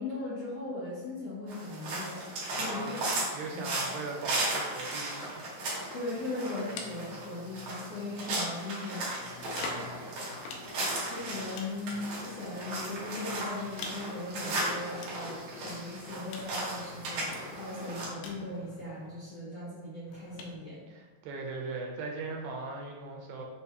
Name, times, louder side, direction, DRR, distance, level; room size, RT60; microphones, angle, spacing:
voice 1, 0.0-2.2 2.6-3.0 3.5-3.7 5.9-10.1 11.1-20.8, left 2 dB, 70° left, -10 dB, 1.5 m, -39 dB
sound 1, 1.5-18.1, right 2 dB, 65° right, 2.0 m, -36 dB
voice 2, 2.5-3.0 3.3-5.6 20.9-23.4, right 3 dB, 90° right, 0 dB, 2.4 m, -39 dB
sound 2, 5.0-8.3 9.1-19.2 20.1-20.6, left 4 dB, 90° left, 2.4 m, -48 dB
5.9 x 2.3 x 2.8 m, 1.4 s
omnidirectional pair, 4.0 m